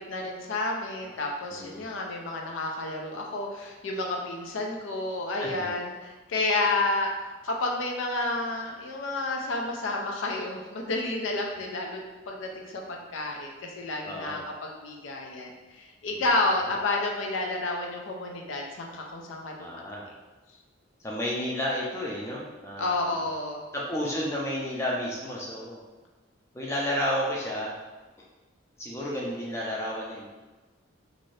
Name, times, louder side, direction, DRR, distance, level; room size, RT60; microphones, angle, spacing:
voice 1, 0.1-19.7 22.8-23.6, left 2 dB, 75° left, 1 dB, 0.5 m, -30 dB
voice 2, 1.5-1.9 5.4-5.7 14.1-14.4 16.1-16.3 19.6-20.0 21.0-23.2 23.7-25.8 26.5-27.8 28.8-30.3, equal, 15° left, -4 dB, 0.4 m, -32 dB
2.6 x 2.5 x 3.2 m, 1.2 s
head